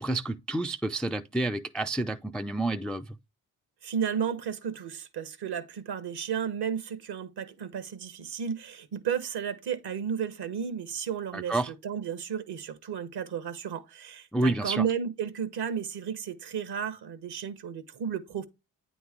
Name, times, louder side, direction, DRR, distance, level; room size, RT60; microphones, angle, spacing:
voice 1, 0.0-3.2 11.3-11.7 14.3-14.8, right 2 dB, ahead, 0.3 m, -29 dB
voice 2, 3.8-11.6 11.8-18.4, right 7 dB, 60° right, 1.0 m, -33 dB
9.1 x 3.1 x 3.6 m
supercardioid pair, 50°, 45 cm